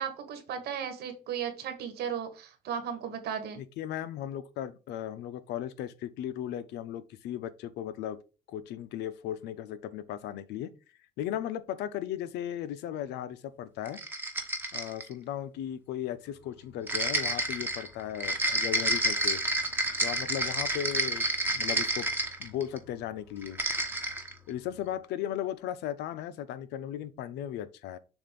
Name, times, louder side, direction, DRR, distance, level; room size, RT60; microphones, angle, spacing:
voice 1, 0.0-3.6, right 8 dB, 70° right, 1.6 m, -35 dB
voice 2, 3.6-8.2 8.5-10.7 11.2-14.0 14.7-19.4 20.0-21.3 21.5-22.1 22.4-23.6 24.5-28.0, left 11 dB, 85° left, 0.7 m, -36 dB
sound 1, 13.8-15.1 16.9-22.8 23.4-24.3, right 1 dB, 10° right, 1.1 m, -29 dB
7.1 x 2.6 x 5.2 m
cardioid pair, 110°, 17 cm